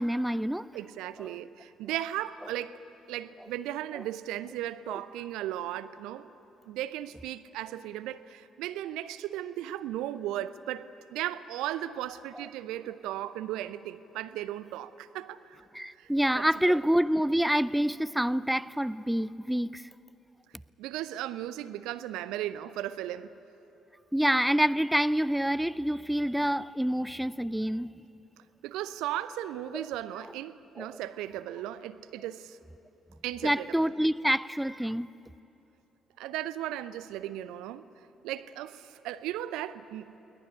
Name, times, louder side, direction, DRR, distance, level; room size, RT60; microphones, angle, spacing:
voice 1, 0.0-0.7 1.2-1.3 4.9-5.0 12.4-12.5 15.7-19.8 24.1-27.9 29.7-29.9 30.8-31.0 33.4-35.1, equal, 5° right, 0.5 m, -27 dB
voice 2, 0.7-2.8 3.1-6.3 6.7-15.6 16.0-16.1 16.4-16.8 20.8-23.3 28.6-32.6 33.2-33.7 36.2-37.9 38.2-40.2, right 13 dB, 65° right, 0.6 m, -36 dB
22.0 x 18.5 x 9.9 m
figure-of-eight pair, 45°, 0 cm